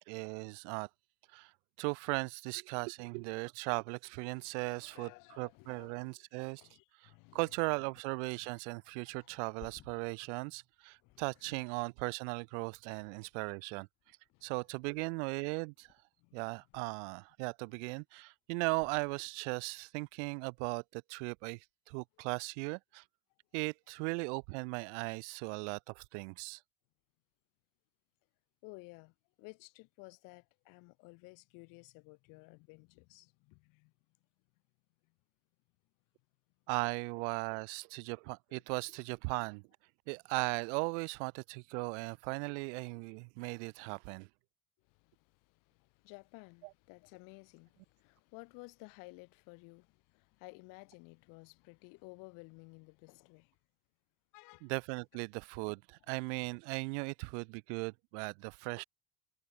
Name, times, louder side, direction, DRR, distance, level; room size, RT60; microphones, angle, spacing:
voice 1, 0.1-0.9 1.3-1.5 1.8-6.6 7.0-13.9 14.4-15.9 16.3-23.0 23.5-26.6 36.7-39.6 40.1-44.3 54.6-58.8, right 33 dB, 80° right, 0.7 m, -38 dB
voice 2, 4.3-6.1 6.6-7.4 8.4-8.5 9.2-9.4 11.0-11.6 14.3-14.5 16.2-16.4 28.6-33.9 38.9-39.0 44.9-53.5 54.3-54.7, left 29 dB, 65° left, 3.3 m, -55 dB
Thump thud, 9.2-12.5 12.9-13.7 14.0-15.4 15.8-17.3 17.7-18.2 18.7-19.7 20.1-20.3, left 13 dB, 40° left, 7.7 m, -63 dB
cardioid pair, 155°, 35 cm